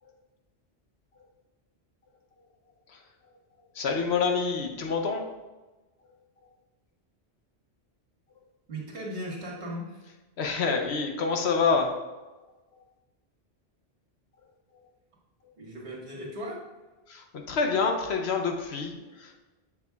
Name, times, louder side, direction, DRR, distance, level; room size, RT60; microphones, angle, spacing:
voice 1, 3.7-5.2 10.4-11.9 17.1-19.4, left 5 dB, 70° left, 3 dB, 1.1 m, -27 dB
voice 2, 8.7-10.0 15.6-16.6, equal, 75° right, -5 dB, 2.0 m, -37 dB
7.4 x 6.6 x 2.4 m, 1.2 s
omnidirectional pair, 1.1 m